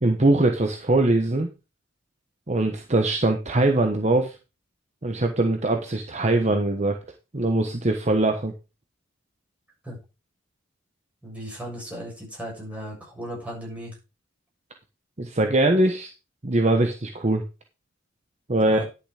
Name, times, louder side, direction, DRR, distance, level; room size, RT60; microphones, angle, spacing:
voice 1, 0.0-1.5 2.5-4.3 5.0-7.0 7.3-8.5 15.2-16.1 16.4-17.4 18.5-18.8, right 2 dB, 35° right, 4 dB, 1.2 m, -22 dB
voice 2, 11.2-13.9 18.6-18.9, equal, 5° right, -4 dB, 7.2 m, -36 dB
11.0 x 6.9 x 5.0 m, 0.29 s
head